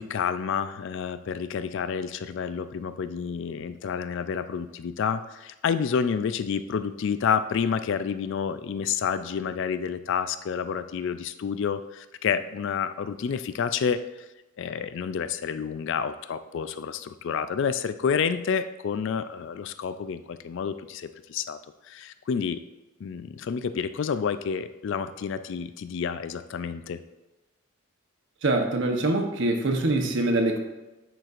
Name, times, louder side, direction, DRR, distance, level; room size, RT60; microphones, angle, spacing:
voice 1, 0.0-14.3 14.6-21.6 21.9-22.6 23.0-27.0, left 6 dB, 55° left, 12 dB, 0.3 m, -29 dB
voice 2, 28.4-30.6, right 2 dB, 55° right, 3 dB, 0.9 m, -24 dB
9.2 x 5.8 x 2.5 m, 1.1 s
head